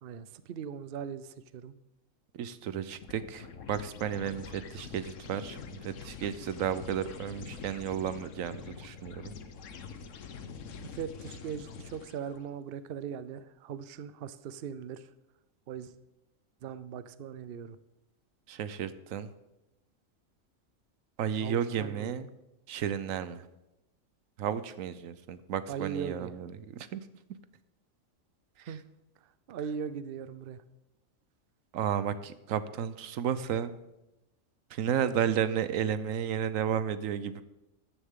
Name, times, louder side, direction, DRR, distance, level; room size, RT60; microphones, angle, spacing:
voice 1, 0.0-1.7 10.9-15.1 15.7-16.0 16.6-17.8 21.4-22.2 25.7-26.3 28.6-28.8 29.2-30.6, right 7 dB, 55° right, 13 dB, 0.7 m, -39 dB
voice 2, 2.3-9.3 18.5-19.3 21.2-22.3 22.7-23.4 24.4-27.0 31.7-33.8 34.7-37.4, right 9 dB, 80° right, 13 dB, 1.1 m, -33 dB
sound 1, 3.0-12.4, left 6 dB, 70° left, 1.2 m, -45 dB
13.5 x 10.0 x 3.7 m, 0.96 s
omnidirectional pair, 1.4 m